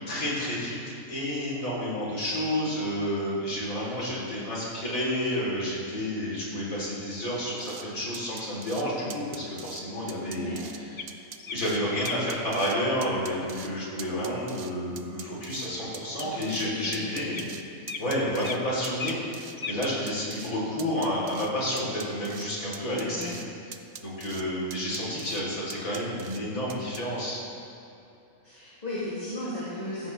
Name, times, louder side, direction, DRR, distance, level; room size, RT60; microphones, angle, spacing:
voice 1, 0.1-0.8 1.1-10.5 10.8-11.1 11.5-17.4 18.0-23.3 23.7-27.4, equal, 65° left, -5 dB, 3.8 m, -30 dB
sound 1, 7.6-7.8 8.1-8.8 9.1-9.8 10.1-10.8 11.1-11.8 12.1-12.8 13.0-13.7 14.0-15.7 15.9-17.6 17.9-18.6 18.8-19.6 19.8-20.5 20.8-21.5 21.8-22.5 22.7-23.5 23.7-24.4 24.7-25.4 25.7-26.4 26.7-27.0, right 6 dB, 60° right, 0.4 m, -42 dB
voice 2, 10.2-10.6 16.2-17.5 23.0-23.3 28.4-30.1, left 1 dB, 25° left, -9 dB, 2.4 m, -36 dB
sound 2, 11.0-11.1 11.4-11.6 12.0-12.2 16.2-16.3 16.8-16.9 17.3-17.4 17.9-18.0 18.4-18.6 18.9-19.3 19.6-19.8, left 5 dB, 45° left, 0.6 m, -36 dB
16.0 x 14.5 x 3.2 m, 2.8 s
omnidirectional pair, 1.5 m